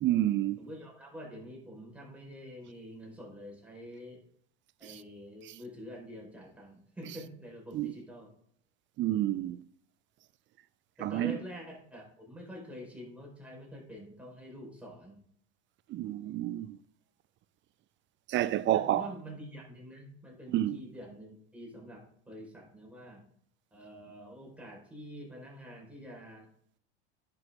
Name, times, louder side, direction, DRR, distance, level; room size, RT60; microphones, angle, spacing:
voice 1, 0.0-0.6 7.7-7.9 9.0-9.6 11.0-11.3 15.9-16.8 18.3-19.0 20.5-20.8, right 13 dB, 35° right, 0.5 m, -29 dB
voice 2, 0.6-4.2 4.8-8.3 11.0-15.2 18.7-23.2 23.7-26.5, equal, 5° right, 4.5 m, -46 dB
10.5 x 6.9 x 3.7 m
hypercardioid pair, 90°, 34 cm